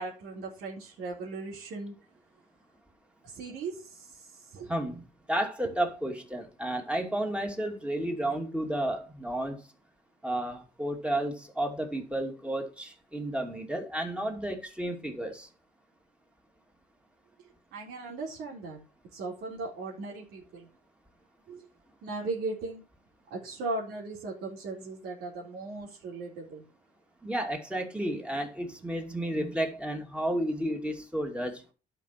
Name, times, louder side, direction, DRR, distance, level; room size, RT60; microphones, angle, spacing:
voice 1, 0.0-1.9 3.2-4.7 17.7-18.8 19.1-20.7 21.5-21.7 22.0-22.8 23.3-26.6, right 3 dB, 75° right, 3.9 m, -38 dB
voice 2, 4.7-9.6 10.2-15.5 27.2-31.6, right 1 dB, 5° right, 2.7 m, -32 dB
11.5 x 5.5 x 6.0 m
cardioid pair, 110°, 17 cm